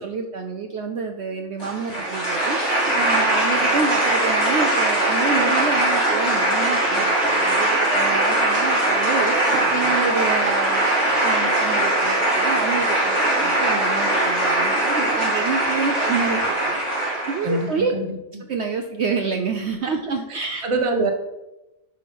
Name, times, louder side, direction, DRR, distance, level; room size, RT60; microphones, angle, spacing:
voice 1, 0.0-16.8 17.3-17.9 18.5-20.7, right 5 dB, 60° right, 4 dB, 0.8 m, -28 dB
sound 1, 1.6-17.6, right 1 dB, 50° left, 3.5 m, -21 dB
voice 2, 17.4-18.4 19.8-20.0 20.3-21.1, right 2 dB, 25° right, 4 dB, 0.9 m, -26 dB
10.5 x 3.7 x 5.3 m, 0.96 s
omnidirectional pair, 1.4 m